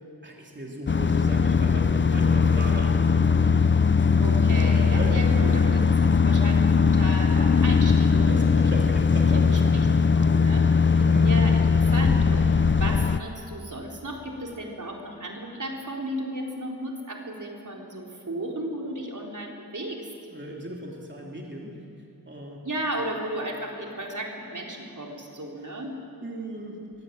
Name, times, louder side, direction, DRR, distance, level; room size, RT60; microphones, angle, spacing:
voice 1, 0.2-3.7 4.9-5.2 8.1-9.9 11.0-11.3 20.3-21.7 22.2-22.6 26.2-26.8, right 1 dB, 30° right, -1 dB, 3.3 m, -37 dB
sound 1, 0.9-13.2, left 5 dB, 30° left, 0.6 m, -20 dB
voice 2, 4.2-8.5 9.3-9.9 10.2-20.0 22.6-26.0, right 1 dB, 55° right, 0 dB, 4.4 m, -35 dB
23.5 x 21.5 x 9.1 m, 2.6 s
wide cardioid pair, 60°, 37 cm